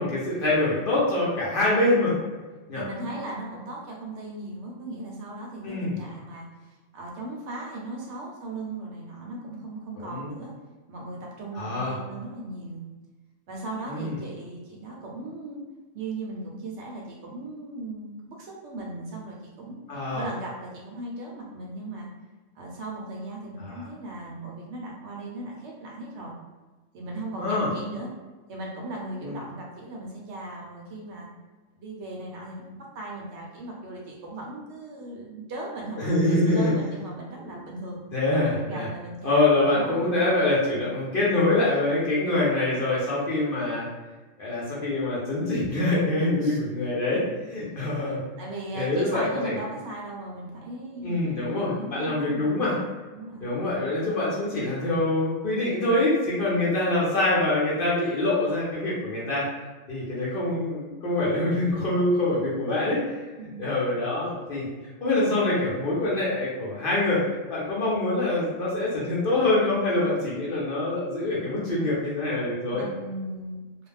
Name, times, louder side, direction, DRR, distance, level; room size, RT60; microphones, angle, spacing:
voice 1, 0.0-2.1 2.7-2.8 5.6-5.9 10.0-10.3 11.5-12.0 13.9-14.1 19.9-20.2 23.6-23.8 27.4-27.7 29.2-29.3 36.0-36.7 37.5-37.6 38.1-38.9 39.2-43.9 44.4-48.2 48.8-49.5 51.0-52.8 53.4-59.5 59.9-63.0 63.6-64.7 65.0-67.2 67.5-72.8, left 2 dB, 55° left, -7 dB, 0.7 m, -25 dB
voice 2, 2.7-10.5 10.9-12.8 13.5-15.6 15.9-19.8 20.1-22.1 22.5-26.3 26.9-28.1 28.5-31.3 31.7-38.0 38.6-40.4 40.7-41.0 46.4-46.6 48.4-52.5 53.1-53.5 63.4-63.7 72.7-73.9, right 2 dB, 70° right, -2 dB, 0.8 m, -37 dB
2.4 x 2.1 x 3.2 m, 1.3 s
omnidirectional pair, 1.3 m